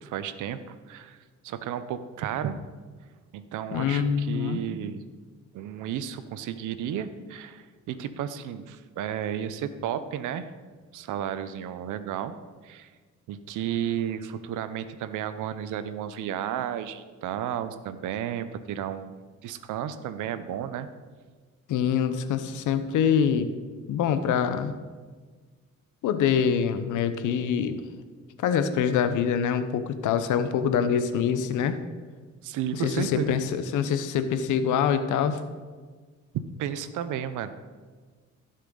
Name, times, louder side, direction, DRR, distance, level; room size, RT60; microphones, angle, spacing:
voice 1, 0.0-1.2 1.4-2.6 3.3-5.0 5.5-10.5 10.9-12.3 12.6-12.9 13.3-19.1 19.4-20.9 32.4-33.4 36.6-37.5, right 9 dB, 85° right, 12 dB, 0.7 m, -33 dB
voice 2, 3.7-4.6 21.7-23.5 23.9-24.7 26.0-27.8 28.4-31.8 32.8-35.4, left 7 dB, 80° left, 10 dB, 0.8 m, -25 dB
15.5 x 6.5 x 3.9 m, 1.5 s
cardioid pair, 90°, 30 cm